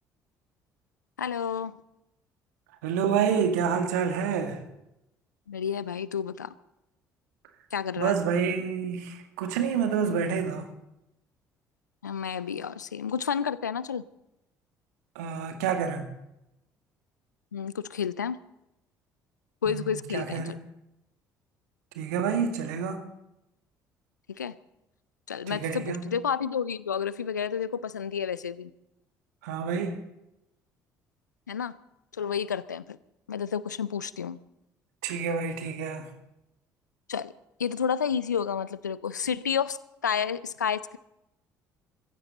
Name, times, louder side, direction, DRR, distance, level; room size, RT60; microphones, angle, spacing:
voice 1, 1.2-1.8 5.5-6.5 7.7-8.2 12.0-14.0 17.5-18.4 19.6-20.6 24.3-24.5 25.3-28.7 31.5-31.7 32.2-33.0 33.3-34.4 37.1-37.3 37.6-39.8 40.0-41.0, left 7 dB, 85° left, 0.5 m, -30 dB
voice 2, 2.8-4.6 8.0-10.7 15.2-16.1 19.7-20.6 22.0-23.0 25.5-26.1 29.4-30.0 35.0-36.1, right 7 dB, 70° right, 1.9 m, -28 dB
23.0 x 15.5 x 4.0 m
figure-of-eight pair, 50°, 9 cm